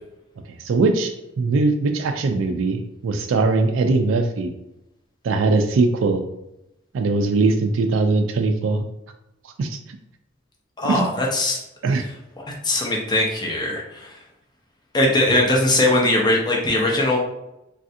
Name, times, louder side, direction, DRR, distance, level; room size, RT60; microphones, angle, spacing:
voice 1, 0.6-1.1 1.4-4.5 5.2-6.2 6.9-8.8 9.6-9.8 10.8-11.1 11.8-12.0 15.3-15.4, right 3 dB, 80° right, 5 dB, 0.3 m, -20 dB
voice 2, 10.8-11.6 12.6-14.1 14.9-17.2, left 1 dB, 20° left, -1 dB, 0.7 m, -20 dB
3.2 x 2.4 x 2.7 m, 0.88 s
head